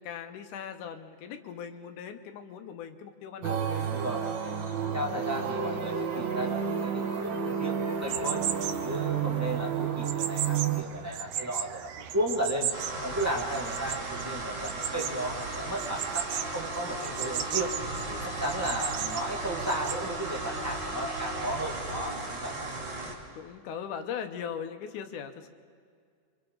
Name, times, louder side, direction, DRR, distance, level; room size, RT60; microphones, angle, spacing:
voice 1, 0.0-3.9 4.7-5.0 22.5-22.8 23.1-25.5, left 8 dB, 75° left, 7 dB, 2.4 m, -40 dB
sound 1, 3.4-10.8, right 7 dB, 55° right, 1.3 m, -31 dB
voice 2, 3.8-4.2 4.9-8.4 8.8-12.7 13.0-17.7 18.1-22.5, right 1 dB, 15° right, -2 dB, 0.6 m, -34 dB
sound 2, 8.0-20.0, right 10 dB, 80° right, 1.4 m, -37 dB
sound 3, 12.7-23.1, right 2 dB, 40° right, 2.9 m, -36 dB
28.5 x 24.5 x 3.9 m, 2.1 s
omnidirectional pair, 3.6 m